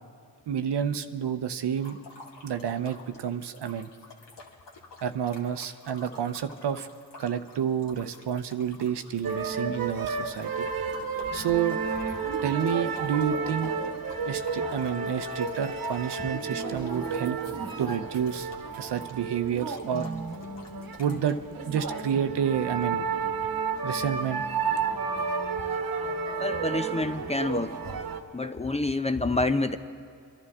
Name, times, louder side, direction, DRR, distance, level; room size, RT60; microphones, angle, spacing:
voice 1, 0.5-2.0 2.4-3.9 5.0-6.9 7.2-10.7 11.3-11.8 12.4-13.7 14.3-17.4 17.8-18.5 18.8-20.1 21.0-21.4 21.7-23.0 23.8-24.4, right 8 dB, 65° right, 10 dB, 0.8 m, -29 dB
sound 1, 1.8-21.3, left 3 dB, 65° left, 1.9 m, -51 dB
sound 2, 9.2-28.2, right 5 dB, 50° right, 1.2 m, -32 dB
voice 2, 26.4-27.8 28.3-29.8, left 2 dB, 15° left, 9 dB, 0.5 m, -27 dB
23.5 x 11.5 x 3.6 m, 2.4 s
cardioid pair, 60°, 44 cm